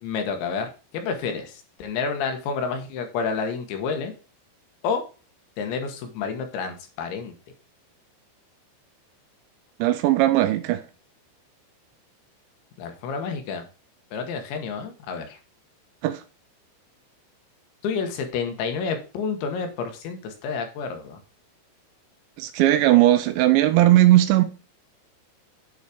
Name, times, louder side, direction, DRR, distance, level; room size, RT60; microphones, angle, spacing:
voice 1, 0.0-4.1 4.8-5.0 5.6-7.3 12.8-13.6 14.1-15.4 17.8-21.2, left 5 dB, 75° left, 3.4 m, -29 dB
voice 2, 9.8-10.8 16.0-16.2 22.4-24.4, right 15 dB, 85° right, 2.9 m, -18 dB
9.5 x 4.1 x 4.9 m
omnidirectional pair, 5.5 m